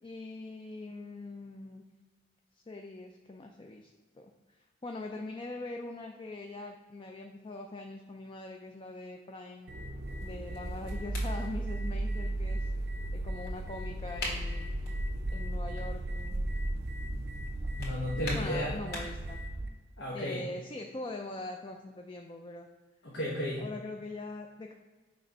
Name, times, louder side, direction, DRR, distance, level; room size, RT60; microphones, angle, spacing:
voice 1, 0.0-1.8 2.7-4.3 4.6-9.7 10.2-12.7 13.1-14.7 15.3-16.5 18.3-19.4 20.1-22.7 23.6-24.7, left 2 dB, 30° left, 3 dB, 0.4 m, -42 dB
sound 1, 9.7-19.7, right 1 dB, 60° right, 0.5 m, -35 dB
sound 2, 10.0-19.3, left 1 dB, 60° left, 2.0 m, -46 dB
voice 2, 17.8-18.8 20.0-20.4 23.0-23.7, left 1 dB, 80° left, -4 dB, 1.1 m, -33 dB
6.4 x 3.3 x 5.3 m, 1.4 s
head